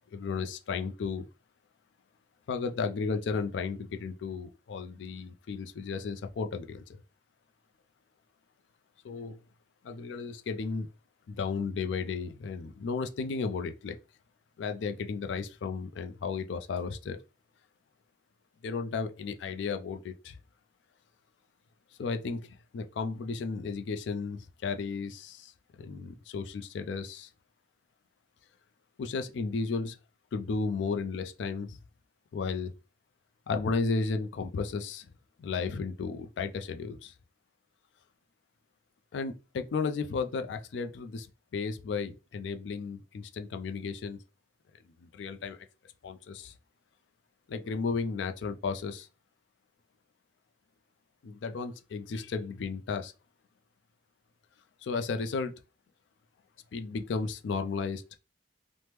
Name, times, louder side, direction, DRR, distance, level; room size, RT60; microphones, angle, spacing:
voice 1, 0.1-1.3 2.5-6.8 9.0-9.4 9.8-10.9 11.3-14.0 14.6-17.2 18.6-20.4 22.0-25.5 25.8-27.3 29.0-30.0 30.3-31.8 32.3-32.7 33.5-35.1 35.4-37.1 39.1-41.3 41.5-44.2 44.8-45.6 46.0-46.5 47.5-49.1 51.2-53.1 54.8-55.5 56.7-58.0, left 4 dB, 85° left, 0.4 m, -34 dB
2.9 x 2.0 x 3.3 m
head